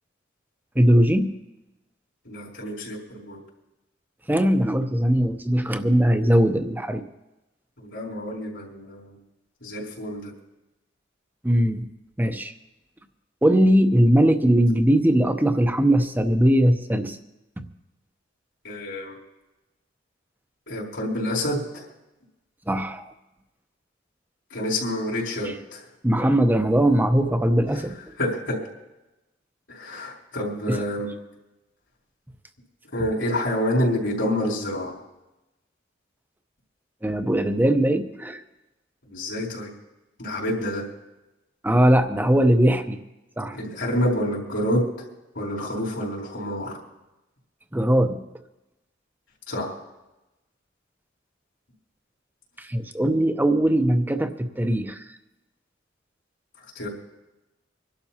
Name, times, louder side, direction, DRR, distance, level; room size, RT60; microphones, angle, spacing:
voice 1, 0.8-1.3 4.3-7.0 11.4-11.9 12.2-12.5 13.4-17.2 22.7-23.0 25.4-25.6 26.0-28.1 30.7-30.8 37.0-38.4 41.6-43.0 43.4-43.6 47.7-48.2 52.6-55.0, right 1 dB, 10° right, 8 dB, 0.8 m, -20 dB
voice 2, 2.2-3.4 7.8-9.2 9.6-10.3 18.6-19.2 20.7-21.8 24.5-25.8 28.2-28.6 29.7-31.1 32.9-34.9 39.1-39.7 40.2-40.8 43.5-44.9 45.3-46.8 49.5-49.7 56.7-56.9, left 1 dB, 75° left, -3 dB, 4.1 m, -28 dB
26.0 x 12.0 x 2.9 m, 1.0 s
head